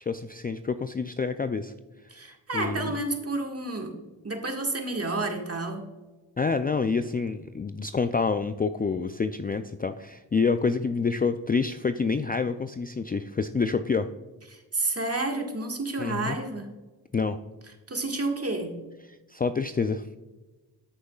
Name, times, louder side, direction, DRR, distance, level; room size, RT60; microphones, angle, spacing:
voice 1, 0.0-1.7 2.5-3.0 6.4-14.1 16.0-16.4 17.1-17.4 19.1-20.1, left 4 dB, 20° left, 9 dB, 0.4 m, -27 dB
voice 2, 2.1-3.9 4.2-5.8 14.5-16.7 17.9-18.7, right 2 dB, 35° right, 3 dB, 1.8 m, -30 dB
14.0 x 6.4 x 2.4 m, 1.2 s
supercardioid pair, 40°, 43 cm